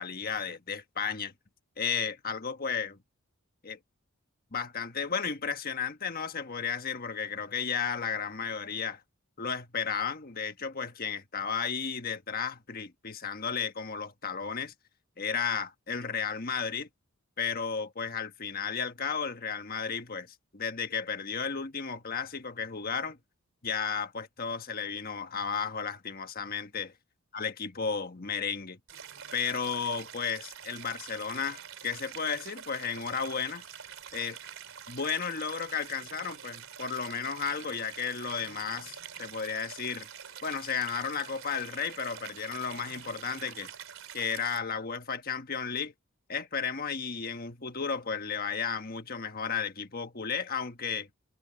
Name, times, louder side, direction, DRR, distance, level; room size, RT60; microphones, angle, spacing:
voice 1, 0.0-1.3 1.8-3.0 3.6-3.8 4.5-9.0 9.4-14.7 15.2-16.9 17.4-23.2 23.6-26.9 27.3-28.8 29.3-33.6 34.1-34.4 34.9-40.1 40.4-43.7 44.1-45.9 46.3-51.1, left 6 dB, 45° left, 1.4 m, -33 dB
Stream, 28.9-44.6, right 8 dB, 65° right, 4.2 m, -46 dB
head